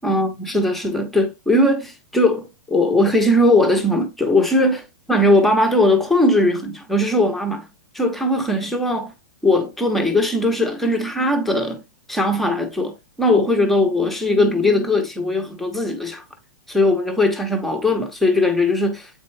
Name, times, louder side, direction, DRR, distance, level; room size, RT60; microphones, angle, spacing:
voice 1, 0.0-7.7 7.9-9.1 9.4-11.8 12.1-16.2 16.7-19.1, left 1 dB, ahead, 0.8 m, -19 dB
8.0 x 4.4 x 3.3 m
hypercardioid pair, 170°, 11 cm